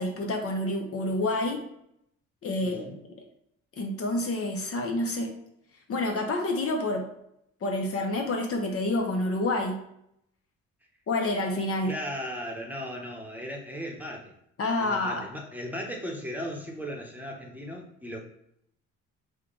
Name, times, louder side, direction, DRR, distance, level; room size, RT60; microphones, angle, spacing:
voice 1, 0.0-1.6 2.4-3.0 3.8-5.3 5.9-7.1 7.6-9.8 11.1-11.9 14.6-15.2, left 2 dB, 50° left, 3 dB, 0.9 m, -28 dB
voice 2, 2.6-3.0 11.8-14.3 14.8-18.2, equal, 5° right, 0 dB, 0.9 m, -37 dB
5.1 x 2.3 x 3.9 m, 0.76 s
cardioid pair, 90°, 30 cm